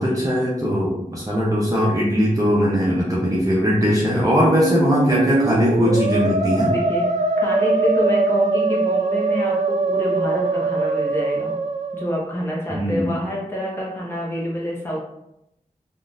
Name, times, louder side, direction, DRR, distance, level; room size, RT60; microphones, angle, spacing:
voice 1, 0.0-6.7 12.8-13.1, equal, 25° right, -5 dB, 0.6 m, -20 dB
Musical instrument, 4.2-12.3, right 3 dB, 60° right, 0.4 m, -22 dB
voice 2, 6.7-7.1 7.4-11.5 11.9-15.0, left 1 dB, 15° left, -5 dB, 0.8 m, -27 dB
3.6 x 2.4 x 2.5 m, 0.85 s
wide cardioid pair, 75°, 14 cm